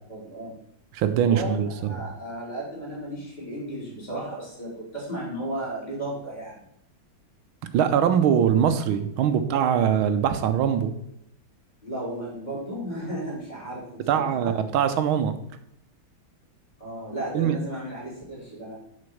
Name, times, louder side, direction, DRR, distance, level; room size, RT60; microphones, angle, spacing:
voice 1, 0.1-0.6 1.3-6.6 11.8-14.5 16.8-18.8, right 1 dB, 20° left, -6 dB, 3.6 m, -34 dB
voice 2, 0.9-2.0 7.7-10.9 14.1-15.3 17.3-17.5, right 8 dB, 80° right, 9 dB, 1.5 m, -22 dB
6.5 x 5.1 x 7.0 m, 0.75 s
omnidirectional pair, 2.3 m